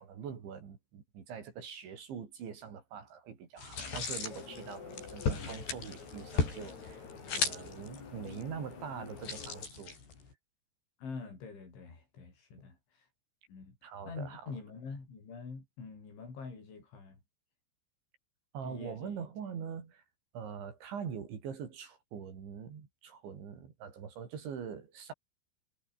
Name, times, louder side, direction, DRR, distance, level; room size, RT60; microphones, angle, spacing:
voice 1, 0.0-10.0 13.8-14.4 18.5-20.0 20.3-25.1, right 7 dB, 80° right, 6.5 m, -43 dB
sound 1, 3.6-10.3, left 5 dB, 65° left, 9.1 m, -37 dB
sound 2, 4.2-9.7, left 5 dB, 40° left, 5.1 m, -48 dB
voice 2, 11.0-13.1 13.5-13.8 14.1-17.2 18.6-19.3, left 4 dB, 90° left, 10.5 m, -45 dB
omnidirectional pair, 5.2 m